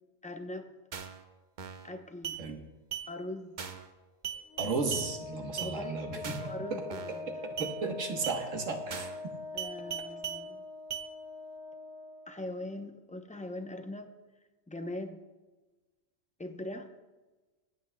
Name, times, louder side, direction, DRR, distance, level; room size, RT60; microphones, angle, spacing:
voice 1, 0.2-0.7 1.8-2.4 3.1-3.6 5.6-7.4 9.5-10.6 12.3-14.1 14.7-15.2 16.4-16.9, left 1 dB, 10° left, 5 dB, 0.4 m, -41 dB
sound 1, 0.9-1.2 1.6-1.9 2.2-2.4 2.9-3.1 3.6-3.9 4.2-5.1 5.6-5.7 6.2-6.5 6.9-7.2 7.6-7.7 8.2-8.4 8.9-9.2 9.6-10.4 10.9-11.1, right 9 dB, 45° right, 0.8 m, -38 dB
Wind instrument woodwind instrument, 4.5-12.3, left 3 dB, 70° left, 1.1 m, -43 dB
voice 2, 4.6-6.3 7.4-9.1, right 4 dB, 75° right, 3 dB, 1.5 m, -34 dB
24.5 x 8.4 x 2.2 m, 1.2 s
omnidirectional pair, 1.3 m